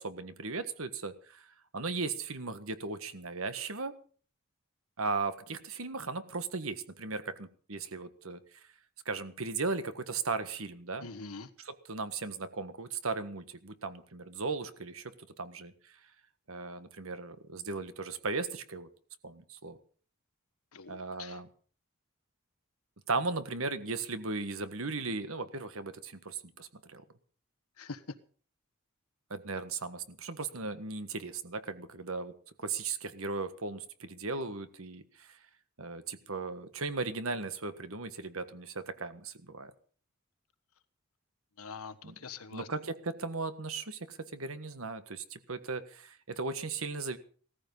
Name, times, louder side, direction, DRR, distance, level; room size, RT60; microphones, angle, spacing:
voice 1, 0.0-1.5 1.7-3.9 5.0-8.4 9.0-11.1 11.6-16.0 16.5-18.9 19.2-19.8 20.9-21.5 23.1-27.0 29.3-32.3 32.6-35.4 35.8-39.7 42.0-42.1 42.5-47.2, right 4 dB, 70° right, 11 dB, 1.5 m, -37 dB
voice 2, 11.0-11.5 20.7-21.4 27.8-28.0 41.6-42.7, left 4 dB, 90° left, 12 dB, 1.4 m, -44 dB
16.5 x 14.5 x 5.5 m, 0.44 s
head